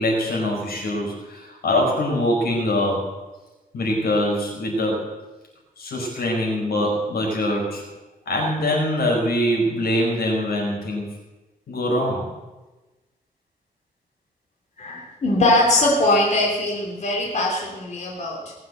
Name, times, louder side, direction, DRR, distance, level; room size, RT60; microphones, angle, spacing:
voice 1, 0.0-3.1 3.7-5.1 5.8-7.8 8.3-11.2 11.7-12.3, left 1 dB, 85° left, -1 dB, 5.2 m, -23 dB
voice 2, 14.8-18.5, left 1 dB, 45° left, -3 dB, 3.4 m, -21 dB
19.5 x 7.7 x 8.1 m, 1.1 s
wide cardioid pair, 130°, 16 cm